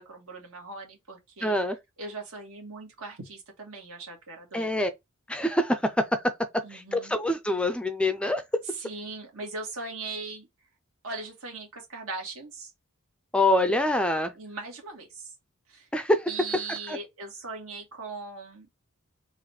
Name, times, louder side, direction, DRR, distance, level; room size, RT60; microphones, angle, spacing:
voice 1, 0.0-1.6 2.0-4.8 6.6-7.1 8.7-10.5 11.0-12.7 14.3-15.3 15.7-15.9 16.3-18.8, right 3 dB, 85° right, 1.7 m, -39 dB
voice 2, 1.4-1.8 4.5-4.9 5.3-5.9 6.7-8.4 13.3-14.3 15.9-16.3 16.9-17.0, left 1 dB, 5° left, 0.4 m, -25 dB
4.0 x 2.5 x 4.2 m
head